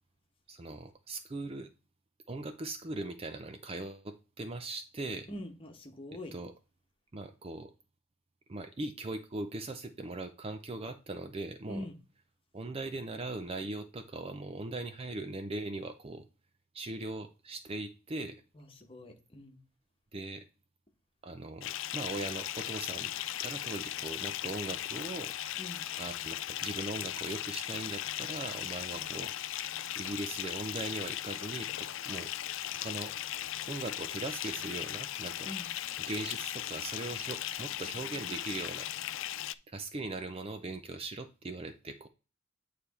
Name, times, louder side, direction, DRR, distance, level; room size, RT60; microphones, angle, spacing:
voice 1, 0.5-1.7 2.3-5.3 6.3-6.5 7.1-7.7 8.5-11.9 12.5-16.3 16.7-18.4 20.1-20.4 21.2-23.1 23.4-25.3 26.0-32.3 32.6-33.1 33.7-35.5 36.0-38.9 39.7-42.1, right 2 dB, 25° right, 0.5 m, -40 dB
voice 2, 5.3-6.3 11.7-12.0 18.5-19.6 25.6-25.8 28.9-29.1 35.4-35.7, left 1 dB, 25° left, 1.3 m, -43 dB
Bathtub (filling or washing) / Fill (with liquid), 21.6-39.5, left 12 dB, 60° left, 0.4 m, -38 dB
8.9 x 3.4 x 4.2 m
head